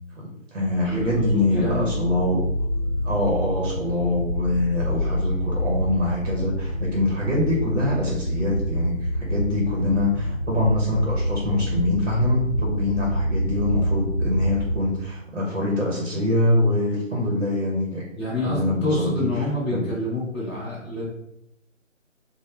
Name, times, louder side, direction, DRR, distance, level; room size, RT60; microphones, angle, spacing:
voice 1, 0.2-2.4 3.0-18.0 18.4-19.3 19.7-19.9, left 1 dB, 50° right, -2 dB, 0.8 m, -24 dB
sound 1, 0.8-14.8, equal, 45° left, 1.1 m, -27 dB
voice 2, 0.9-2.1 18.2-21.0, left 2 dB, 20° left, -12 dB, 1.0 m, -27 dB
3.0 x 2.1 x 3.2 m, 0.80 s
figure-of-eight pair, 165°, 40 cm